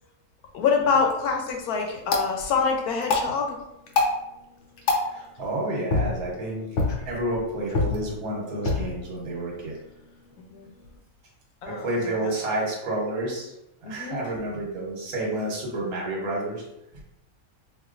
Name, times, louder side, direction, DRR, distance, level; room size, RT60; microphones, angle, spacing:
voice 1, 0.5-3.6 10.5-10.7 11.6-12.3 13.8-14.2, left 5 dB, 85° left, 2 dB, 1.2 m, -26 dB
sound 1, 1.0-11.0, left 3 dB, 60° left, 0.8 m, -30 dB
voice 2, 5.1-6.7 7.1-9.8 11.7-13.5 13.8-16.6 16.9-17.0, right 1 dB, 75° right, -2 dB, 1.4 m, -30 dB
4.3 x 2.6 x 2.4 m, 0.88 s
omnidirectional pair, 1.5 m